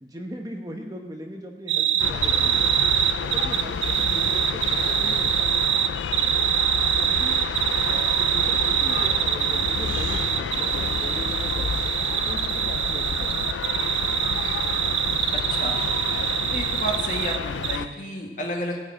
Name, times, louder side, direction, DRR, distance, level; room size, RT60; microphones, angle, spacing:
voice 1, 0.0-2.8 3.2-5.5 7.0-7.4 7.9-11.7 12.3-13.6, equal, 20° right, 3 dB, 1.0 m, -39 dB
sound 1, 1.7-17.4 17.6-17.8, right 10 dB, 80° right, 0.6 m, -24 dB
sound 2, 2.0-17.9, left 6 dB, 85° left, 0.4 m, -30 dB
voice 2, 15.3-15.8 16.5-18.8, left 1 dB, 45° left, 0 dB, 2.0 m, -31 dB
16.0 x 5.4 x 8.8 m, 1.3 s
head